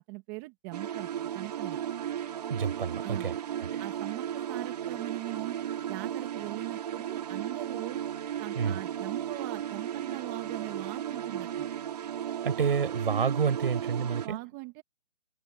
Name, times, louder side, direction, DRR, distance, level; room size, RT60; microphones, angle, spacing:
voice 1, 0.1-1.8 3.0-3.3 3.8-5.6 5.9-8.0 8.4-11.7 14.2-14.8, right 25 dB, 20° right, 1.7 m, -40 dB
sound 1, 0.7-14.3, right 10 dB, 45° right, 2.0 m, -35 dB
voice 2, 2.5-3.7 8.5-8.8 12.4-14.4, right 6 dB, 65° right, 6.2 m, -29 dB
hypercardioid pair, 160°, 29 cm